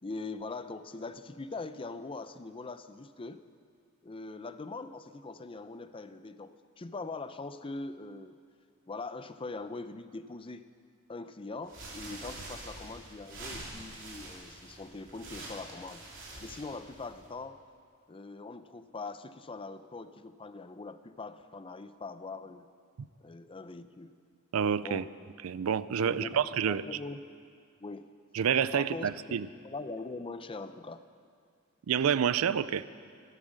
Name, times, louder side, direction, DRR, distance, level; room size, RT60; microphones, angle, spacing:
voice 1, 0.0-3.4 4.0-8.4 8.9-10.6 11.1-16.0 16.4-17.6 18.1-22.6 23.2-24.1 24.8-25.1 26.0-27.2 27.8-28.1 28.7-29.4 29.6-31.0, left 3 dB, 25° left, 11 dB, 0.5 m, -42 dB
sound 1, 11.6-17.3, right 2 dB, 60° right, 3.4 m, -46 dB
voice 2, 24.5-25.0 25.4-27.0 28.3-29.5 31.9-32.9, right 7 dB, 85° right, 17 dB, 0.4 m, -28 dB
15.5 x 12.5 x 6.4 m, 2.3 s
head